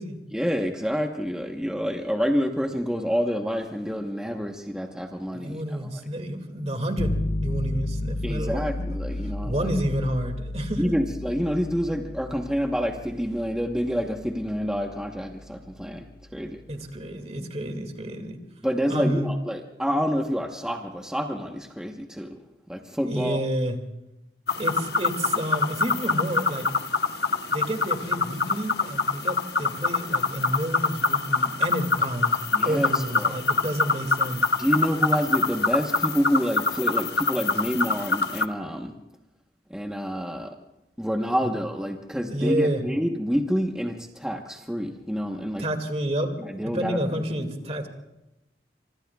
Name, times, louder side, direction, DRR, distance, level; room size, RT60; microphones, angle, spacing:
voice 1, 0.3-5.8 8.2-9.7 10.8-16.6 18.6-22.4 22.7-23.4 32.5-33.4 34.6-39.0 39.7-40.6 41.0-45.7 46.4-47.2, equal, 5° right, 2 dB, 1.0 m, -28 dB
voice 2, 5.3-8.8 9.4-10.9 16.7-18.4 18.9-19.3 23.0-23.8 24.6-26.7 27.5-32.4 32.6-34.4 42.3-42.8 45.6-47.9, right 1 dB, 35° right, 6 dB, 2.1 m, -29 dB
sound 1, 7.0-16.9, left 1 dB, 45° left, 0.9 m, -33 dB
sound 2, 24.5-38.4, left 4 dB, 65° left, 1.0 m, -25 dB
25.5 x 24.5 x 2.3 m, 0.93 s
head